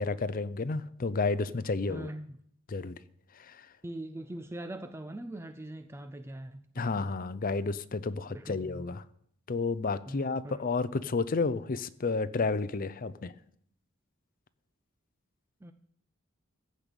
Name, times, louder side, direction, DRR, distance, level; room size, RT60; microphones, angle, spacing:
voice 1, 0.0-2.1 2.7-3.0 6.8-9.0 9.5-13.3, left 3 dB, 45° left, 15 dB, 0.6 m, -31 dB
voice 2, 1.9-2.4 3.8-7.0 8.2-8.8 10.1-10.6 15.6-15.7, right 1 dB, 10° right, 9 dB, 0.5 m, -42 dB
15.0 x 5.3 x 8.3 m, 0.66 s
head